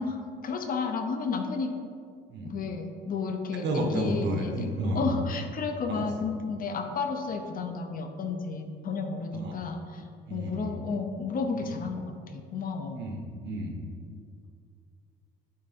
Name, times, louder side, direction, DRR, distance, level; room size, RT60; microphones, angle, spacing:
voice 1, 0.0-1.7 2.4-10.0 10.3-13.0, left 4 dB, 45° left, 6 dB, 0.7 m, -32 dB
voice 2, 3.6-5.1 5.9-6.0 9.3-9.6 10.3-10.7 11.5-11.8 13.0-13.7, right 1 dB, 65° right, 2 dB, 1.1 m, -32 dB
8.7 x 3.9 x 4.2 m, 2.2 s
cardioid pair, 120°, 20 cm